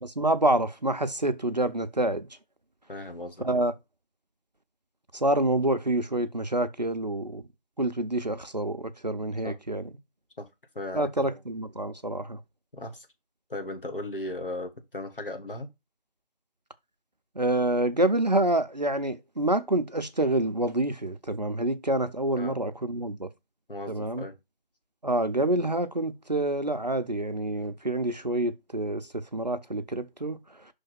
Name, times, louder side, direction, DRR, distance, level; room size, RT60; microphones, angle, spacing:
voice 1, 0.0-2.3 3.4-3.7 5.1-7.4 7.8-9.8 10.9-12.4 17.4-23.3 23.9-24.2 25.0-30.4, right 1 dB, 45° right, 0.6 m, -27 dB
voice 2, 2.9-3.6 9.4-9.6 10.4-10.5 10.7-11.3 12.7-13.1 13.5-15.7 22.3-22.6 23.7-24.4, left 1 dB, 65° left, 1.7 m, -37 dB
5.9 x 3.4 x 5.6 m
figure-of-eight pair, 165°, 30 cm